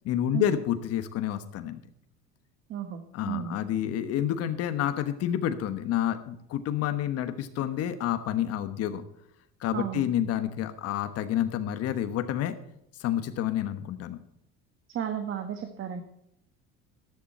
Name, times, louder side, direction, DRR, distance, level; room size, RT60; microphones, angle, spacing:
voice 1, 0.0-1.8 3.1-9.0 9.6-12.5 13.0-14.2, left 11 dB, 55° left, 9 dB, 1.2 m, -29 dB
voice 2, 2.7-3.6 9.7-10.1 14.9-16.0, right 9 dB, 45° right, 7 dB, 1.4 m, -33 dB
13.5 x 11.5 x 4.3 m, 0.78 s
cardioid pair, 125°, 29 cm